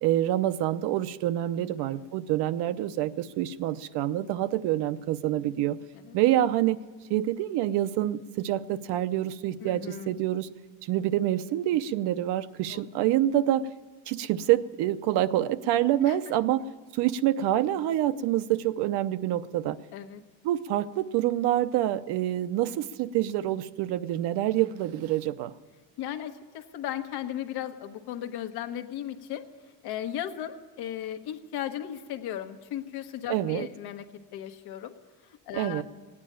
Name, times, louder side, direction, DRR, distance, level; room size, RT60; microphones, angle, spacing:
voice 1, 0.0-5.8 6.1-6.8 7.1-10.5 10.8-13.7 14.1-16.6 16.9-19.8 20.4-25.5 33.3-33.7 35.5-35.8, right 13 dB, 65° right, 12 dB, 0.7 m, -26 dB
voice 2, 1.6-2.0 6.1-6.2 9.6-10.1 12.7-12.8 16.0-16.2 19.9-20.2 26.0-29.5 29.8-34.0 34.3-34.9 35.5-35.8, left 11 dB, 60° left, 7 dB, 1.3 m, -36 dB
17.0 x 9.8 x 8.7 m, 1.4 s
cardioid pair, 180°, 43 cm